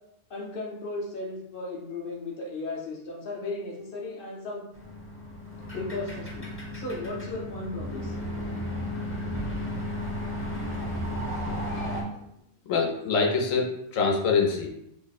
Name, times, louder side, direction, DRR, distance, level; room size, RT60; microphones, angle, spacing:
voice 1, 0.3-4.6 5.7-6.5 6.7-8.2, left 2 dB, 50° left, -1 dB, 0.8 m, -35 dB
sound 1, 4.7-12.0, equal, 15° left, 0.5 m, -34 dB
voice 2, 12.7-14.7, left 4 dB, 85° left, 1 dB, 1.1 m, -25 dB
3.3 x 2.0 x 4.0 m, 0.78 s
omnidirectional pair, 1.3 m